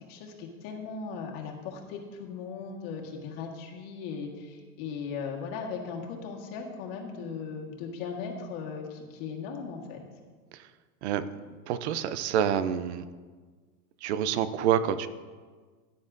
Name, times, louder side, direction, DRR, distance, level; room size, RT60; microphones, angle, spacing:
voice 1, 0.0-10.0, left 5 dB, 40° left, 1 dB, 1.6 m, -38 dB
voice 2, 11.7-13.0 14.0-15.1, right 9 dB, 50° right, 13 dB, 0.6 m, -27 dB
15.0 x 9.5 x 2.6 m, 1.5 s
supercardioid pair, 165°, 46 cm